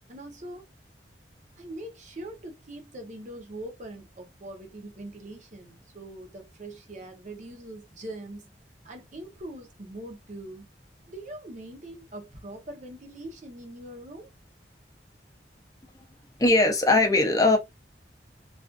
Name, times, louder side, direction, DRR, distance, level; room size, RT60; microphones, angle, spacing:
voice 1, 0.1-0.7 1.6-8.5 8.8-10.7 11.1-14.3, right 1 dB, 45° right, 0.7 m, -42 dB
voice 2, 16.4-17.6, left 2 dB, 20° left, 0.6 m, -20 dB
2.4 x 2.3 x 2.4 m
head